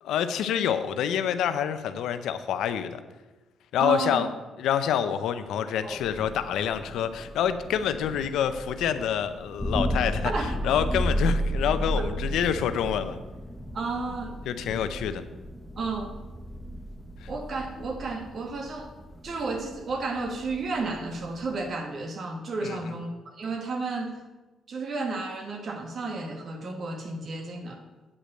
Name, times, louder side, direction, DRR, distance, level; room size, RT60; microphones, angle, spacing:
voice 1, 0.0-3.0 3.7-4.3 4.6-10.3 10.6-13.2 14.5-15.2 17.2-17.3 22.6-22.9, left 9 dB, 80° left, 11 dB, 0.6 m, -27 dB
voice 2, 3.8-4.3 5.8-6.0 10.2-10.6 12.0-12.1 13.7-14.4 15.8-16.1 17.3-18.9 19.2-24.2 24.7-27.8, right 3 dB, 50° right, 4 dB, 1.6 m, -32 dB
Thunder, 5.9-21.7, equal, 5° left, 1.0 m, -34 dB
8.5 x 5.1 x 7.6 m, 1.2 s
cardioid pair, 90°, 0 cm